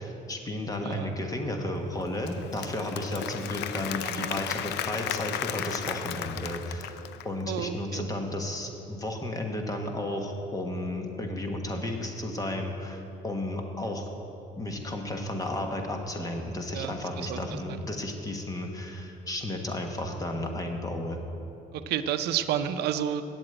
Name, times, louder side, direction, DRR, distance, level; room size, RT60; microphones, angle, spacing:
voice 1, 0.0-14.1 14.6-21.2, left 1 dB, 20° left, 3 dB, 1.4 m, -33 dB
voice 2, 0.8-1.1 4.0-4.4 7.5-8.1 16.7-17.4 17.7-17.8 21.7-23.2, right 10 dB, 75° right, 10 dB, 0.6 m, -31 dB
Applause / Crowd, 2.0-7.4, left 11 dB, 80° left, 0.5 m, -35 dB
8.3 x 7.7 x 8.9 m, 2.9 s
cardioid pair, 110°, 17 cm